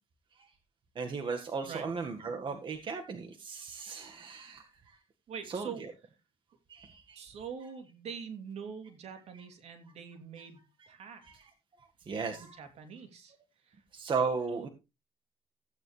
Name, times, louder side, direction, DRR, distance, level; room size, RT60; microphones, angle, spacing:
voice 1, 1.0-4.7 5.5-5.7 6.7-7.2 11.2-11.3 12.1-12.6 13.9-14.7, right 5 dB, 45° right, 4 dB, 1.7 m, -35 dB
voice 2, 5.3-5.8 7.1-11.5 12.3-13.8 14.5-14.7, right 7 dB, 70° right, 6 dB, 3.1 m, -44 dB
15.5 x 9.2 x 3.3 m, 0.26 s
cardioid pair, 115°, 12 cm